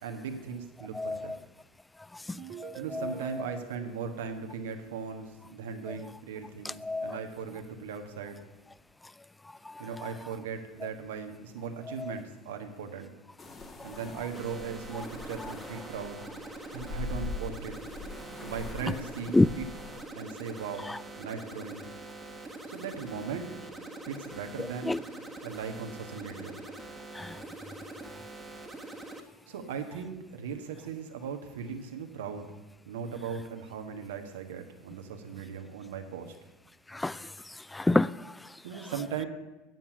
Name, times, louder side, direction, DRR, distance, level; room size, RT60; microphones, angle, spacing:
voice 1, 0.0-1.3 2.7-8.4 9.8-13.1 13.8-16.3 16.7-17.7 18.4-19.6 20.1-21.9 22.7-23.5 24.0-25.0 25.4-26.5 29.5-32.6 32.8-36.3 38.6-39.3, right 6 dB, 70° right, 1.3 m, -38 dB
voice 2, 0.9-1.4 2.1-3.6 5.9-6.0 6.6-7.2 9.6-10.1 12.0-12.1 13.8-13.9 19.3-19.5 20.8-21.0 24.6-25.0 27.1-27.4 36.9-38.6, left 2 dB, 10° left, 0.3 m, -30 dB
sound 1, 2.4-5.3, right 11 dB, 45° right, 0.7 m, -48 dB
sound 2, 13.4-20.1, left 3 dB, 25° left, 1.6 m, -42 dB
sound 3, 14.3-29.2, right 2 dB, 10° right, 1.5 m, -44 dB
9.2 x 7.3 x 8.1 m
figure-of-eight pair, 75°, 0 cm